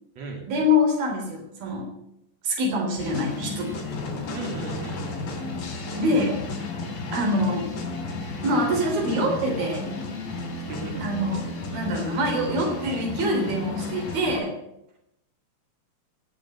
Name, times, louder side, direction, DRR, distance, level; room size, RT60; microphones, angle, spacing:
voice 1, 0.5-1.9 2.4-3.8 6.0-6.4 7.1-7.7 8.4-9.8 11.0-14.5, left 1 dB, 75° right, 1 dB, 5.4 m, -25 dB
sound 1, 3.0-14.4, left 3 dB, 70° left, 5.0 m, -33 dB
voice 2, 4.3-5.0 10.7-11.0, right 3 dB, 45° right, 1 dB, 4.2 m, -35 dB
18.0 x 7.9 x 8.1 m, 0.84 s
omnidirectional pair, 4.3 m